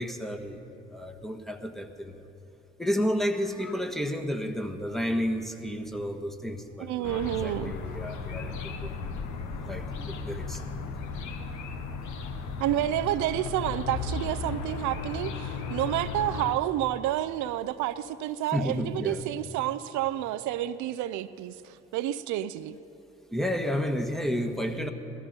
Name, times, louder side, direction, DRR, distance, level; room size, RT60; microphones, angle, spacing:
voice 1, 0.0-2.2 2.8-10.6 18.5-19.2 23.3-24.9, equal, ahead, 5 dB, 1.4 m, -32 dB
voice 2, 6.8-7.7 12.6-22.8, right 13 dB, 70° right, 13 dB, 0.5 m, -30 dB
sound 1, 7.0-16.5, left 4 dB, 70° left, 1.1 m, -35 dB
16.5 x 13.5 x 5.2 m, 3.0 s
hypercardioid pair, 40°, 31 cm